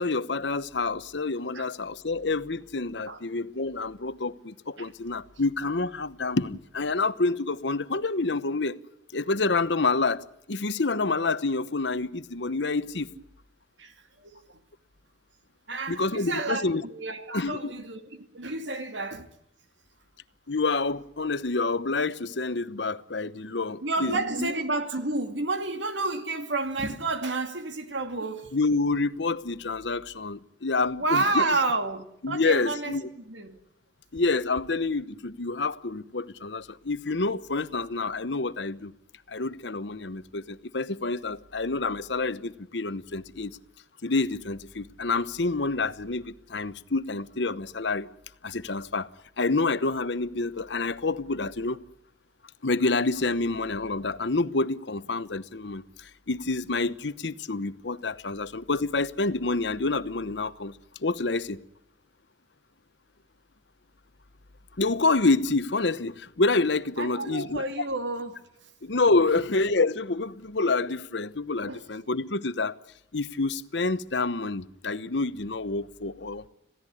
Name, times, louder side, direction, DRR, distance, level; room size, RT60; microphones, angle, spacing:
voice 1, 0.0-8.8 9.1-13.1 15.9-16.8 17.3-17.7 20.5-24.5 28.5-31.6 32.2-33.0 34.1-38.9 39.3-43.6 44.0-48.1 48.4-49.1 49.4-51.8 52.6-61.6 64.8-67.6 68.8-72.8 73.1-76.4, left 3 dB, 70° left, 1.0 m, -28 dB
voice 2, 13.8-14.6 15.7-19.3 23.8-28.6 31.0-33.6 67.0-68.7 71.7-71.8, right 3 dB, 85° right, 2.5 m, -30 dB
27.0 x 16.5 x 9.9 m
head